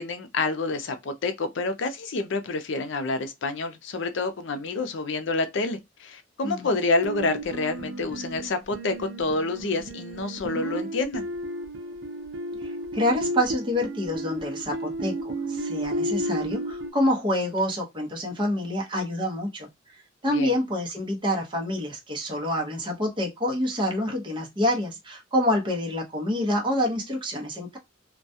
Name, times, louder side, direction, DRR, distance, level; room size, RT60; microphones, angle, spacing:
voice 1, 0.0-11.3 20.3-20.5, left 3 dB, 70° left, 0.5 m, -28 dB
sound 1, 7.0-16.9, right 1 dB, 70° right, 0.5 m, -33 dB
voice 2, 12.9-19.7 20.2-27.8, left 1 dB, 25° right, 0.8 m, -27 dB
2.3 x 2.2 x 2.6 m
head